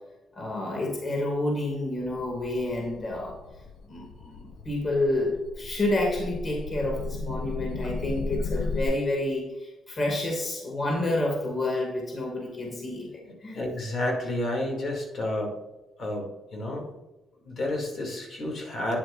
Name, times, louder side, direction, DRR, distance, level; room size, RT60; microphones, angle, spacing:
voice 1, 0.3-3.4 3.9-13.1 13.4-13.6, left 1 dB, 35° left, 0 dB, 2.3 m, -29 dB
sound 1, 2.0-8.8, left 3 dB, 75° left, 0.6 m, -35 dB
voice 2, 13.1-15.5 16.0-16.8 17.4-19.0, left 1 dB, 50° left, 0 dB, 2.5 m, -31 dB
9.5 x 7.7 x 2.6 m, 1.0 s
cardioid pair, 90°, 0 cm